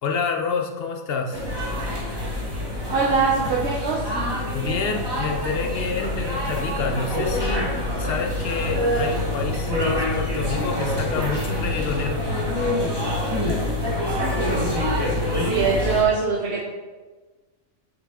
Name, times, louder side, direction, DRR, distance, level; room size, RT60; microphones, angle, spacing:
voice 1, 0.0-1.5 4.5-12.4, left 5 dB, 55° left, 3 dB, 0.8 m, -28 dB
sound 1, 1.3-16.0, left 1 dB, 20° right, 1.2 m, -26 dB
voice 2, 2.9-4.0 15.5-16.6, right 5 dB, 55° right, -5 dB, 1.0 m, -22 dB
7.2 x 4.1 x 3.6 m, 1.3 s
omnidirectional pair, 1.4 m